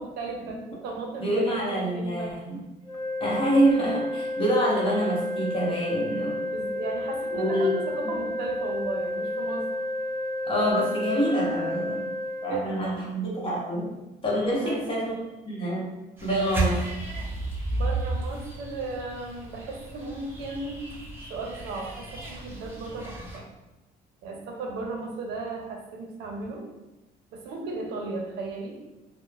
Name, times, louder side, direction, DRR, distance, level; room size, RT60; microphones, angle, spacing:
voice 1, 0.0-2.4 6.5-9.6 12.5-13.1 14.5-15.2 17.7-20.9 21.3-23.5 24.2-26.7 27.3-28.7, right 3 dB, 85° right, 1 dB, 0.6 m, -35 dB
voice 2, 1.2-2.6 3.2-6.5 7.3-7.7 8.3-8.4 10.4-12.0 12.4-13.9 14.2-15.1 15.4-15.9 16.2-16.8, right 1 dB, 30° left, -4 dB, 0.9 m, -26 dB
sound 1, 2.8-12.5, left 1 dB, 15° left, 1.4 m, -31 dB
sound 2, 16.2-23.4, right 2 dB, 15° right, 0.6 m, -33 dB
2.9 x 2.0 x 2.3 m, 1.0 s
cardioid pair, 110°, 17 cm